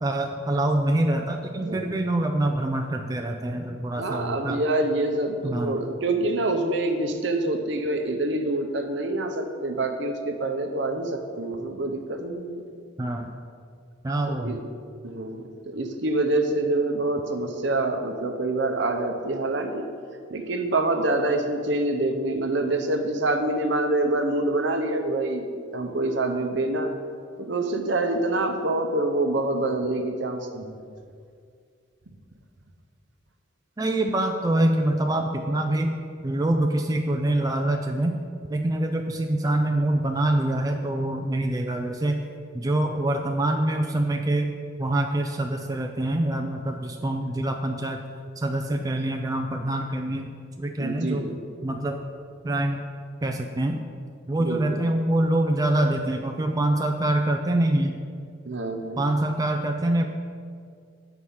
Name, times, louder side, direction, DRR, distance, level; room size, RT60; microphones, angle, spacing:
voice 1, 0.0-4.6 5.4-5.8 13.0-13.3 14.0-14.6 33.8-36.0 36.2-38.1 38.5-42.2 42.5-44.5 44.8-48.0 48.4-50.3 50.6-51.2 51.6-52.0 52.4-52.8 53.2-53.8 54.3-58.0 59.0-60.0, right 1 dB, 20° right, 3 dB, 0.3 m, -25 dB
voice 2, 4.0-12.6 14.3-14.6 15.0-19.8 20.3-27.0 27.4-30.8 50.8-51.4 54.4-54.6 58.4-59.0, right 2 dB, 65° right, 5 dB, 0.7 m, -26 dB
8.5 x 4.6 x 5.5 m, 2.2 s
head